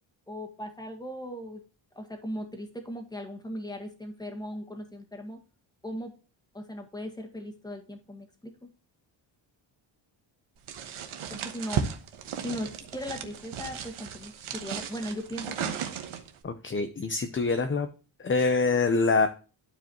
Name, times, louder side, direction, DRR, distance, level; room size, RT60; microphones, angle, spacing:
voice 1, 0.3-1.6 2.0-5.4 5.8-6.1 6.5-8.7 11.3-11.8 12.4-15.8, equal, 10° left, 4 dB, 1.9 m, -38 dB
sound 1, 10.7-16.4, right 7 dB, 85° right, 1.2 m, -35 dB
voice 2, 16.4-17.9 18.2-19.3, left 4 dB, 25° left, 8 dB, 0.6 m, -25 dB
12.0 x 4.8 x 2.9 m, 0.35 s
wide cardioid pair, 120°, 48 cm